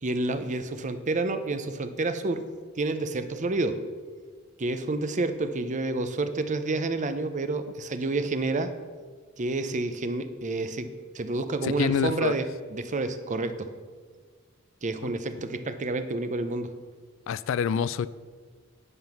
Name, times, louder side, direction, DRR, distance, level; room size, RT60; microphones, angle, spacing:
voice 1, 0.0-2.4 2.8-3.8 4.6-8.7 9.4-10.9 11.1-13.7 14.8-16.7, right 2 dB, 35° right, 10 dB, 0.6 m, -29 dB
voice 2, 11.6-12.3 15.0-15.1 17.3-18.1, left 7 dB, 65° left, 17 dB, 0.3 m, -26 dB
9.7 x 5.4 x 5.9 m, 1.5 s
head